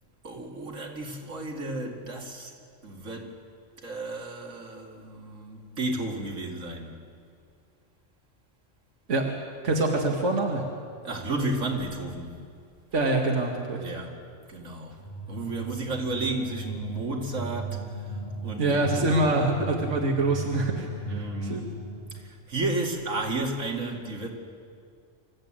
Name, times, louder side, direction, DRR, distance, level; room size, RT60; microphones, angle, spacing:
voice 1, 0.2-2.5 2.8-3.3 3.8-7.0 11.0-12.4 13.8-14.2 14.5-15.0 15.3-19.5 21.1-21.7 22.1-24.3, right 2 dB, 85° right, 1 dB, 2.8 m, -33 dB
voice 2, 9.6-10.6 12.9-13.8 18.6-21.7, right 2 dB, 70° right, 0 dB, 2.1 m, -25 dB
sound 1, 14.9-22.3, right 1 dB, 45° left, 4.3 m, -37 dB
26.0 x 14.5 x 8.9 m, 2.2 s
omnidirectional pair, 1.3 m